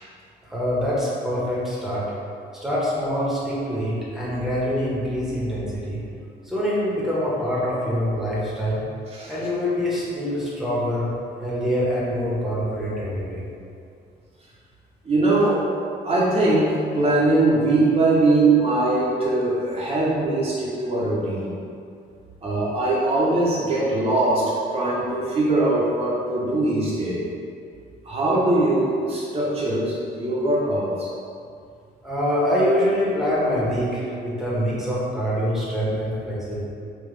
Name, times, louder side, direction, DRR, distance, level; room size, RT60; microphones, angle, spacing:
voice 1, 0.5-2.0 2.6-6.0 6.4-8.8 9.3-11.1 11.4-13.4 32.0-36.6, equal, ahead, -8 dB, 1.4 m, -25 dB
voice 2, 15.0-15.6 16.0-21.5 22.4-27.2 28.0-31.1, right 2 dB, 30° right, -8 dB, 0.9 m, -21 dB
3.5 x 3.0 x 3.3 m, 2.4 s
cardioid pair, 80°, 19 cm